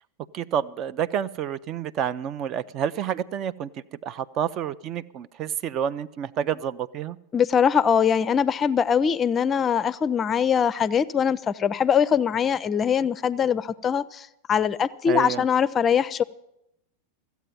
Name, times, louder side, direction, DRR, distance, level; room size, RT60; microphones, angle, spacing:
voice 1, 0.3-3.7 4.0-7.2 15.1-15.5, right 9 dB, 35° right, 16 dB, 0.4 m, -29 dB
voice 2, 7.3-16.2, left 7 dB, 25° left, 17 dB, 0.5 m, -22 dB
14.5 x 8.1 x 9.4 m, 0.82 s
figure-of-eight pair, 90°, 0 cm